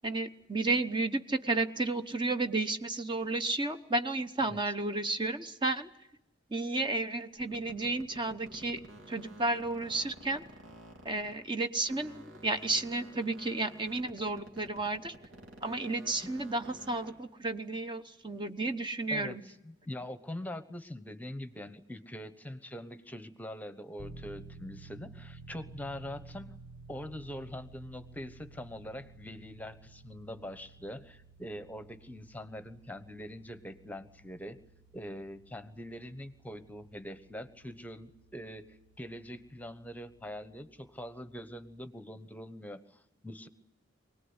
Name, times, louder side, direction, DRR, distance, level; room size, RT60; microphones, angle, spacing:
voice 1, 0.0-5.9 6.5-8.8 9.1-10.4 11.0-15.1 15.6-19.4, right 2 dB, 25° right, 8 dB, 1.0 m, -32 dB
sound 1, 7.3-11.6 11.8-17.3, right 1 dB, 80° right, 3.3 m, -52 dB
voice 2, 19.1-26.6 26.9-34.6 34.9-43.5, equal, 10° left, 11 dB, 1.1 m, -43 dB
sound 2, 24.0-40.3, right 3 dB, 55° right, 1.3 m, -54 dB
24.5 x 18.5 x 9.7 m, 0.88 s
head